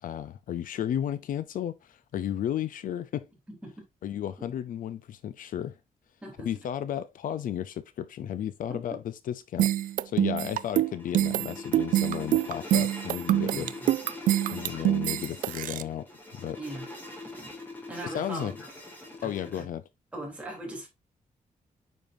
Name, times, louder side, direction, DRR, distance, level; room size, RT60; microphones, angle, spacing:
voice 1, 0.0-3.3 4.0-5.8 6.4-9.7 10.0-13.7 14.5-16.1 16.3-16.6 18.1-18.5 19.2-19.8, left 10 dB, 75° left, 0.6 m, -33 dB
sound 1, 9.6-15.8, right 13 dB, 75° right, 0.4 m, -25 dB
sound 2, 10.4-19.6, left 2 dB, 15° left, 2.9 m, -43 dB
voice 2, 13.5-13.9 16.6-16.9 17.2-17.5 17.9-18.7 19.2-19.3 19.6-19.7 20.1-20.9, right 1 dB, 10° right, 3.4 m, -40 dB
9.1 x 5.4 x 2.7 m
wide cardioid pair, 175°, 14 cm